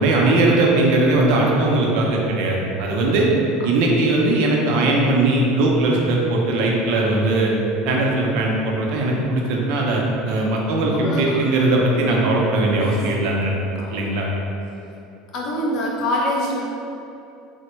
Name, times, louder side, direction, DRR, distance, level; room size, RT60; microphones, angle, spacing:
voice 1, 0.0-3.3 3.6-7.5 7.9-13.6 13.9-14.3, right 2 dB, 65° right, -1 dB, 0.5 m, -19 dB
voice 2, 10.9-11.4 12.8-13.0 13.8-14.1 15.3-16.6, left 1 dB, 45° left, -3 dB, 0.5 m, -25 dB
3.3 x 2.1 x 3.0 m, 2.8 s
cardioid pair, 155°, 0 cm